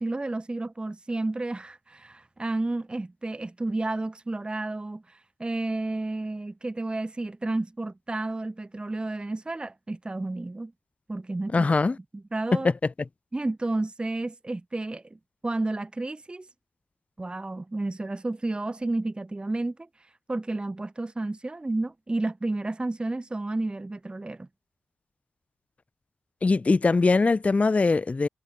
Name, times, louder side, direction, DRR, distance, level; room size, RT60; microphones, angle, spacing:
voice 1, 0.0-10.7 11.1-11.7 12.1-12.7 13.3-16.5 17.2-19.9 20.3-24.5, right 2 dB, 20° right, 0.6 m, -31 dB
voice 2, 11.5-12.0 26.4-28.3, left 3 dB, 30° left, 0.4 m, -21 dB
cardioid pair, 50°, 5 cm